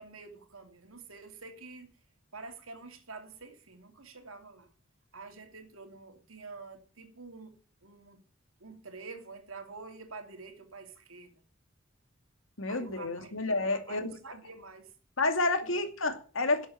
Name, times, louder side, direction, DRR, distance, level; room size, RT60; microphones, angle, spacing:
voice 1, 0.0-1.9 2.3-4.7 5.1-7.6 7.8-8.2 8.6-11.4 12.7-13.4 13.6-14.9 15.6-15.8, right 3 dB, 85° right, 2.9 m, -47 dB
voice 2, 12.6-14.1 15.2-16.7, left 2 dB, 70° left, 2.5 m, -30 dB
12.0 x 7.8 x 8.8 m
head